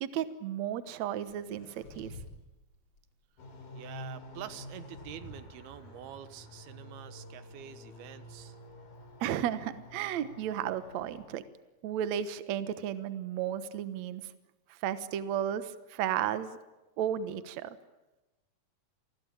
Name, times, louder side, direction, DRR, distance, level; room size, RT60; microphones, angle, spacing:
voice 1, 0.0-2.1 9.2-11.4 11.8-14.2 14.7-16.6 17.0-17.8, right 10 dB, 65° right, 12 dB, 2.0 m, -33 dB
sound 1, 1.3-2.4 2.7-3.1 4.3-5.4, left 2 dB, 30° left, 4.0 m, -50 dB
sound 2, 3.4-11.3, left 1 dB, 65° left, 5.7 m, -49 dB
voice 2, 3.7-8.6, right 11 dB, 85° right, 12 dB, 3.2 m, -46 dB
28.5 x 21.5 x 8.8 m, 1.0 s
omnidirectional pair, 4.4 m